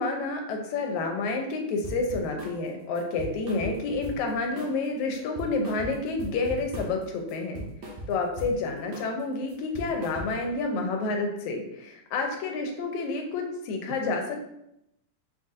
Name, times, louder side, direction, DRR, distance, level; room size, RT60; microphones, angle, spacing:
voice 1, 0.0-7.6 8.1-14.4, left 3 dB, 85° left, 2 dB, 1.9 m, -29 dB
sound 1, 1.8-2.6 3.0-4.3 4.6-4.9 5.1-7.0 7.3-8.6 8.9-9.2 9.5-10.5, right 1 dB, 70° right, 1.8 m, -39 dB
5.9 x 2.6 x 2.4 m, 0.81 s
omnidirectional pair, 3.3 m